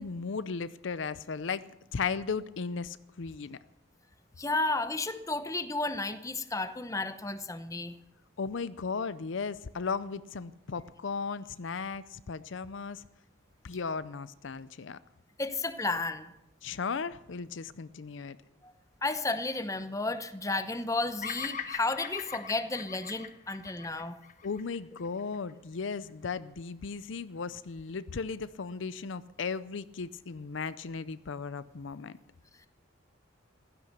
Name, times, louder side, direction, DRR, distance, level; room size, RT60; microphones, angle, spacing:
voice 1, 0.0-1.6 1.9-3.6 8.4-13.0 13.6-15.0 16.6-18.4 24.4-32.2, left 5 dB, 70° left, 16 dB, 0.5 m, -36 dB
voice 2, 4.4-7.9 15.4-16.3 18.6-18.7 19.0-24.2, left 2 dB, 15° left, 10 dB, 0.9 m, -32 dB
Bird vocalization bird call bird song, 21.2-25.5, left 7 dB, 40° left, 1.1 m, -41 dB
16.0 x 13.5 x 6.7 m, 0.88 s
head